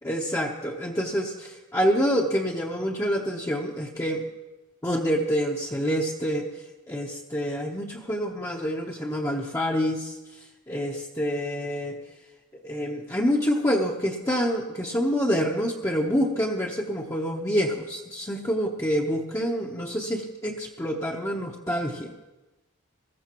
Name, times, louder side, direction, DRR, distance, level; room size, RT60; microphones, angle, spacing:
voice 1, 0.0-4.2 4.8-6.5 6.9-10.2 10.7-12.0 12.5-22.1, equal, 15° left, -2 dB, 0.8 m, -27 dB
20.5 x 14.5 x 3.0 m, 1.1 s
head